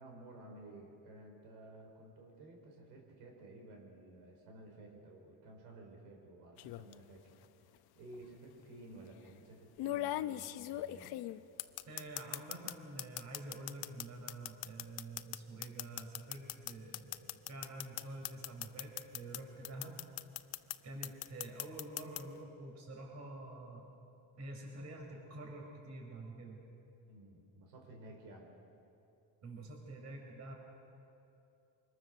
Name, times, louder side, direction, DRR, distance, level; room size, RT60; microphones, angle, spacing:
voice 1, 0.0-7.3 7.7-11.1 27.1-28.5, right 2 dB, 90° right, 1 dB, 5.0 m, -54 dB
sound 1, 6.6-6.9 8.1-8.2 9.8-12.7 13.0-19.4 19.6-20.8 21.0-22.2, left 15 dB, 70° left, 0.8 m, -39 dB
voice 2, 11.9-20.1 20.8-23.9 24.4-26.6 29.4-30.5, right 2 dB, 40° right, 2 dB, 4.6 m, -48 dB
25.0 x 21.5 x 6.7 m, 2.8 s
cardioid pair, 130°, 39 cm